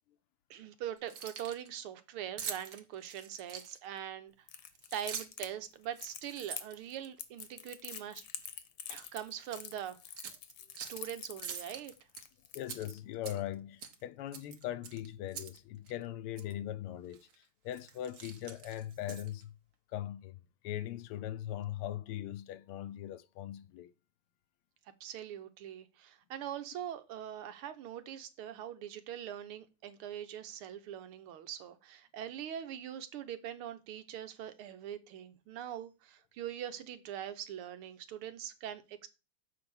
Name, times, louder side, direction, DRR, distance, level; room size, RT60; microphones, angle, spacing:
voice 1, 0.5-4.3 4.9-8.3 8.9-10.0 10.8-11.9 25.0-39.1, right 10 dB, 80° right, 1.8 m, -42 dB
Keys jangling, 1.0-1.7 2.4-4.0 4.7-5.5 5.9-7.5 7.9-8.1 8.4-9.1 9.4-9.6 10.2-11.1 11.4-12.2 12.6-13.5 13.8-14.0 14.3-15.6 15.9-16.0 16.4-16.5 17.1-17.3 17.7-19.4, right 7 dB, 55° right, 1.3 m, -45 dB
Crackle, 4.5-12.9, left 9 dB, 65° left, 1.4 m, -46 dB
voice 2, 12.5-19.6 19.9-23.9, left 12 dB, 85° left, 1.6 m, -40 dB
7.0 x 4.8 x 7.0 m
omnidirectional pair, 2.4 m